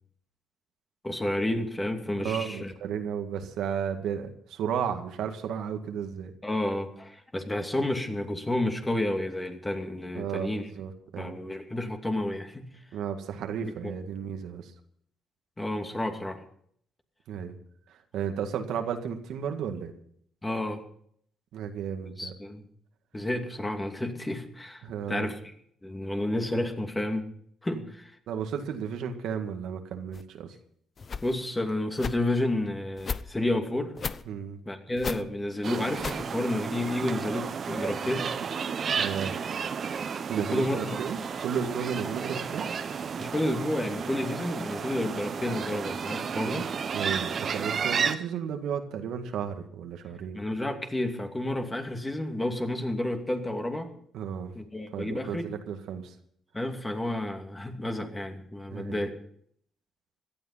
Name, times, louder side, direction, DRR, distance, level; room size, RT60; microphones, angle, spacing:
voice 1, 1.0-2.7 6.4-10.7 11.2-12.7 13.6-13.9 15.6-16.4 20.4-20.8 22.2-22.6 23.1-25.5 25.8-27.3 27.6-28.2 31.2-34.0 34.7-38.3 40.5-41.0 43.2-46.7 50.3-53.9 54.5-55.5 56.5-59.2, left 1 dB, 15° left, 4 dB, 2.5 m, -31 dB
voice 2, 2.2-6.3 10.1-11.4 12.9-14.7 17.3-17.6 17.9-19.9 21.5-22.3 24.8-25.3 27.7-27.8 28.3-30.5 34.3-34.6 39.0-39.4 40.3-42.7 46.3-46.7 46.9-50.4 54.1-54.5 54.9-56.1 58.7-59.0, right 7 dB, 80° right, 5 dB, 1.9 m, -33 dB
sound 1, 30.1-30.2 31.0-31.3 32.0-32.2 33.0-33.2 34.0-34.2 35.0-35.2 36.0-36.2, left 5 dB, 40° left, 0.8 m, -34 dB
sound 2, 35.6-48.2, right 6 dB, 50° right, 1.2 m, -32 dB
17.5 x 12.5 x 5.7 m, 0.65 s
cardioid pair, 90°, 0 cm